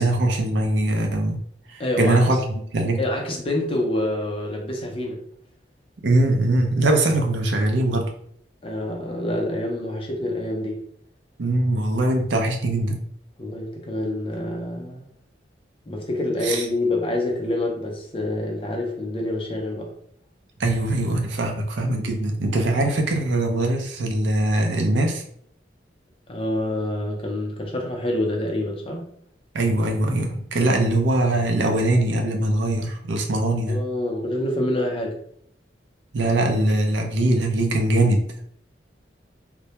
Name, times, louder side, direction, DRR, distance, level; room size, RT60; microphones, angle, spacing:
voice 1, 0.0-1.4 1.7-3.0 6.0-8.1 11.4-13.0 16.4-16.6 20.6-25.2 29.5-33.8 36.1-38.2, right 1 dB, 80° right, 2 dB, 0.5 m, -22 dB
voice 2, 1.8-2.4 3.0-5.2 8.6-10.8 13.4-15.1 15.9-19.9 26.3-29.1 33.7-35.2, left 1 dB, 30° left, 0 dB, 0.5 m, -27 dB
2.1 x 2.1 x 2.8 m, 0.67 s
head